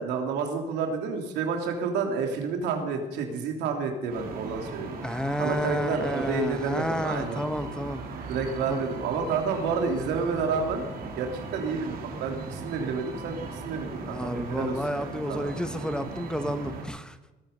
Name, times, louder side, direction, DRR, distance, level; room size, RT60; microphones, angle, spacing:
voice 1, 0.0-5.0 5.4-7.4 8.3-13.4 13.6-15.5, right 5 dB, 85° right, 4 dB, 3.3 m, -30 dB
sound 1, 4.1-16.8, right 3 dB, 60° right, 3.4 m, -38 dB
voice 2, 5.0-8.1 8.7-8.8 14.1-17.2, equal, 5° left, 9 dB, 1.2 m, -31 dB
20.0 x 9.2 x 6.8 m, 1.1 s
cardioid pair, 110°, 17 cm